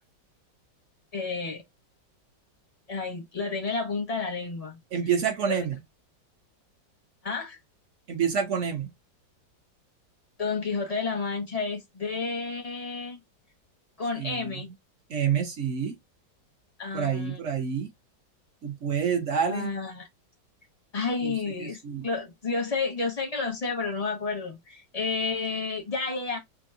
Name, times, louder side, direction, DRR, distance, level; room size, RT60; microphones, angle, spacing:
voice 1, 1.1-1.6 2.9-4.8 5.5-5.6 7.2-7.6 10.4-13.2 14.0-14.7 16.8-17.4 19.4-20.1 20.9-26.4, left 4 dB, 35° left, 0.6 m, -31 dB
voice 2, 4.9-5.7 8.1-8.9 14.2-14.5 15.1-16.0 16.9-17.9 18.6-19.7 21.2-21.3 21.6-22.0, right 7 dB, 55° right, 0.8 m, -28 dB
5.2 x 2.1 x 2.6 m
omnidirectional pair, 2.0 m